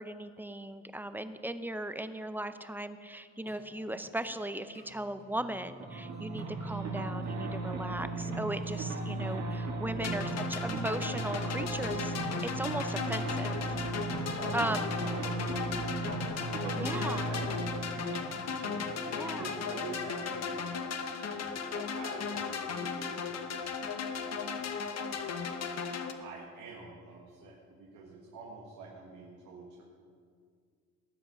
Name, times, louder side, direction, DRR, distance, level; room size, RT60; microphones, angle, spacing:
voice 1, 0.0-13.8 14.5-14.8 16.8-17.2 19.1-19.5, right 1 dB, 5° right, 10 dB, 0.7 m, -37 dB
sound 1, 3.5-13.1, equal, 30° left, 2.1 m, -53 dB
sound 2, 5.8-19.9, right 2 dB, 65° right, 2.7 m, -36 dB
sound 3, 10.0-26.1, left 6 dB, 60° left, 1.1 m, -36 dB
voice 2, 14.4-16.2 16.6-25.7 26.2-29.8, right 4 dB, 90° right, -2 dB, 1.8 m, -46 dB
18.5 x 7.9 x 5.1 m, 2.1 s
cardioid pair, 90°, 30 cm